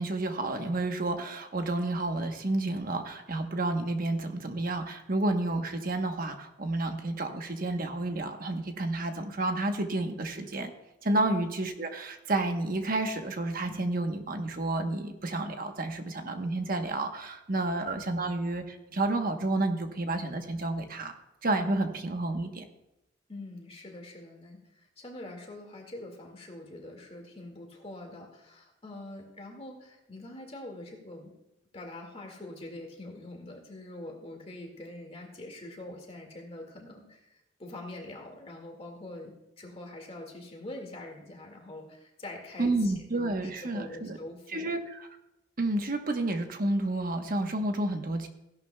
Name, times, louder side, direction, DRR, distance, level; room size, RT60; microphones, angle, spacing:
voice 1, 0.0-10.7 11.0-21.1 21.4-22.6 42.6-44.2 44.5-44.8 45.6-48.3, right 2 dB, 50° right, 6 dB, 1.1 m, -30 dB
voice 2, 23.3-31.3 31.7-42.9 43.2-44.7, left 1 dB, 30° left, 2 dB, 2.0 m, -44 dB
16.0 x 11.0 x 2.3 m, 0.92 s
head